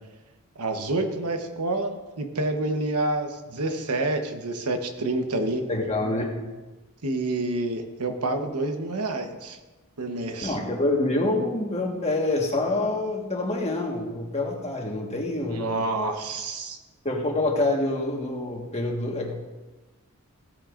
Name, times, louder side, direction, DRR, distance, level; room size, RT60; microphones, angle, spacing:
voice 1, 0.6-5.6 7.0-9.6 10.0-10.6 15.5-16.8, right 2 dB, 90° right, 5 dB, 1.0 m, -28 dB
voice 2, 5.7-6.3 10.4-15.8 17.0-19.3, left 2 dB, 30° left, 0 dB, 1.5 m, -26 dB
15.5 x 8.4 x 2.5 m, 1.2 s
head